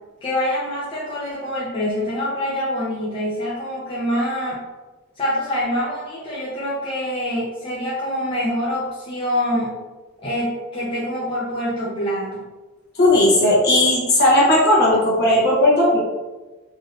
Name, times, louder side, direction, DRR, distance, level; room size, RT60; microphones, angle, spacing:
voice 1, 0.2-4.7 5.2-9.7 10.2-12.5, equal, 25° left, -8 dB, 0.5 m, -25 dB
voice 2, 13.0-16.0, left 1 dB, 50° left, -4 dB, 0.9 m, -16 dB
3.4 x 2.6 x 2.4 m, 1.2 s
head